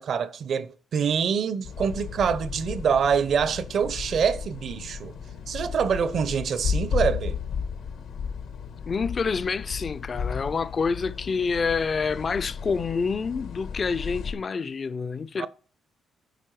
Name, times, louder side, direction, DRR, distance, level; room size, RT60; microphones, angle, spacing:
voice 1, 0.0-5.2 5.5-7.4 15.4-15.5, right 6 dB, 60° right, 0.6 m, -25 dB
sound 1, 1.6-14.3, left 6 dB, 80° left, 1.4 m, -34 dB
voice 2, 8.8-15.5, left 5 dB, 40° left, 0.4 m, -27 dB
9.0 x 4.6 x 4.7 m
cardioid pair, 90°, 0 cm